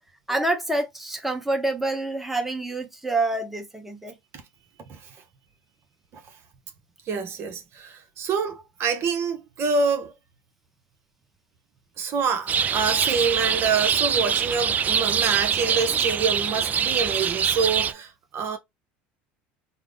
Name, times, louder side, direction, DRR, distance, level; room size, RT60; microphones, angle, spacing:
voice 1, 0.3-4.1, right 2 dB, 5° right, 0.9 m, -27 dB
voice 2, 7.1-10.1 12.0-18.6, right 5 dB, 50° right, 0.7 m, -26 dB
sound 1, 12.5-17.9, right 7 dB, 30° right, 0.3 m, -24 dB
3.5 x 2.0 x 3.4 m
supercardioid pair, 95°, 6 cm